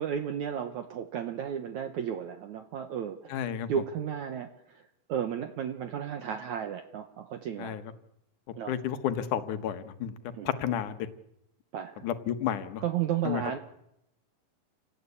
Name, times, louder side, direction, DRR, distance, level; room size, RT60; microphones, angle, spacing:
voice 1, 0.0-3.4 3.7-4.5 5.1-7.8 8.6-8.7 10.3-10.5 11.7-12.1 12.8-13.6, right 9 dB, 65° right, 7 dB, 2.3 m, -33 dB
voice 2, 3.3-3.7 7.6-7.8 8.7-10.1 10.4-11.1 12.0-12.8 13.2-13.4, left 9 dB, 65° left, 10 dB, 2.7 m, -31 dB
28.5 x 18.0 x 8.5 m, 0.82 s
omnidirectional pair, 4.1 m